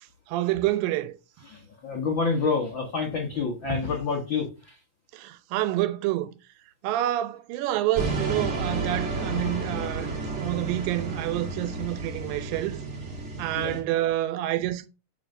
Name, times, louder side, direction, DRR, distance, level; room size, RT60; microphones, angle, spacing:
voice 1, 0.3-1.1 5.1-6.4 6.8-12.8 13.4-14.9, right 14 dB, 90° right, 2.3 m, -28 dB
voice 2, 1.4-4.8 9.3-9.6 13.5-13.8, left 4 dB, 85° left, 1.0 m, -28 dB
sound 1, 7.9-13.8, right 3 dB, 65° right, 0.7 m, -32 dB
6.8 x 6.6 x 2.6 m
omnidirectional pair, 4.0 m